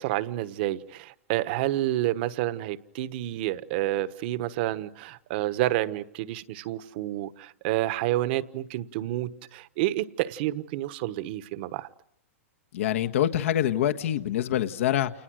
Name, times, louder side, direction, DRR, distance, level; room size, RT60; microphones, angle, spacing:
voice 1, 0.0-11.9, right 15 dB, 45° right, 1.2 m, -29 dB
voice 2, 12.7-15.1, left 11 dB, 65° left, 1.5 m, -25 dB
30.0 x 28.5 x 6.4 m
hypercardioid pair, 150°, 7 cm